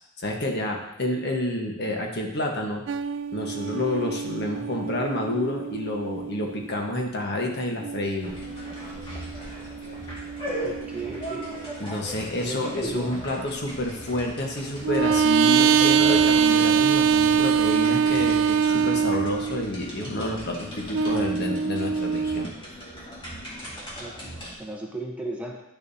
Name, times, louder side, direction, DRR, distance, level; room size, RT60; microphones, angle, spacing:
voice 1, 0.2-2.9 3.3-8.3 11.8-22.5, left 1 dB, 55° left, 1 dB, 1.2 m, -29 dB
sound 1, 2.9-6.8 7.8-11.9 14.8-19.7 20.9-22.4, right 6 dB, 65° right, 0.3 m, -24 dB
sound 2, 8.2-24.5, equal, 25° left, 2.0 m, -38 dB
voice 2, 10.6-11.5 12.4-13.1 24.0-25.6, right 2 dB, 5° right, -1 dB, 0.9 m, -36 dB
10.5 x 7.0 x 2.7 m, 0.84 s
head